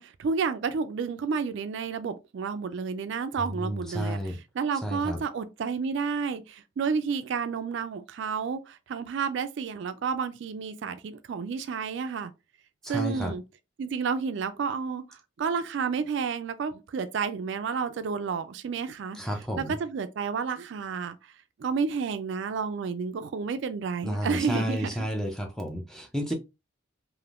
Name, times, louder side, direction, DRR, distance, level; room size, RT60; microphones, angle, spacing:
voice 1, 0.0-12.3 12.9-13.4 13.8-19.2 19.6-21.2 21.6-25.1, right 5 dB, 60° right, 0.3 m, -31 dB
voice 2, 3.5-4.4 4.8-5.2 12.8-13.3 19.1-19.8 24.0-26.3, equal, 5° left, 0.4 m, -31 dB
3.4 x 2.5 x 2.4 m
head